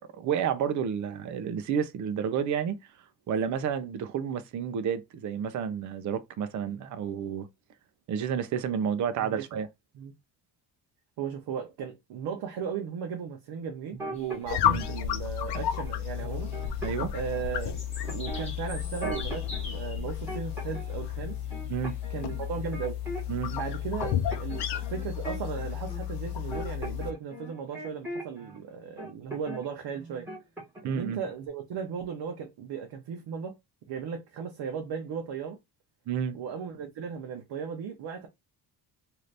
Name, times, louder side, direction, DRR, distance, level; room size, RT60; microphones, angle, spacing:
voice 1, 0.1-2.8 3.3-7.5 8.1-9.7 14.6-14.8 16.8-17.1 21.7-22.0 23.3-23.5 30.8-31.2 36.1-36.4, right 7 dB, 45° right, 0.4 m, -30 dB
voice 2, 11.2-16.5 17.1-17.7 18.0-21.4 22.1-23.0 23.5-30.3 30.8-33.6 33.9-35.6 36.3-38.3, right 7 dB, 75° right, 0.8 m, -36 dB
sound 1, 13.9-15.0 15.5-15.9 16.2-17.5 18.1-19.6 20.0-20.9 21.2-23.4 23.7-28.6 29.0-29.6 29.9-31.0 31.2-31.5, right 1 dB, 5° right, 1.3 m, -40 dB
sound 2, 14.1-26.1, left 3 dB, 15° left, 0.9 m, -49 dB
sound 3, 14.5-27.1, left 10 dB, 65° left, 0.6 m, -32 dB
2.8 x 2.5 x 3.2 m
cardioid pair, 165°, 42 cm